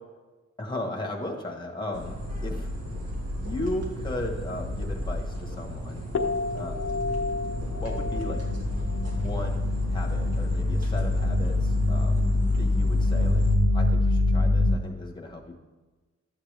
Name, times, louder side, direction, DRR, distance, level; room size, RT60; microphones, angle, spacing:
voice 1, 0.6-2.7 3.4-6.0 6.5-7.0 7.7-8.4 9.1-12.2 12.6-13.4 13.7-15.5, left 1 dB, 15° left, 1 dB, 1.3 m, -36 dB
sound 1, 1.9-13.6, equal, 60° right, 1.7 m, -35 dB
sound 2, 4.6-5.8 6.1-14.8, left 2 dB, 50° left, 0.8 m, -25 dB
12.0 x 7.8 x 3.4 m, 1.2 s
wide cardioid pair, 170°, 29 cm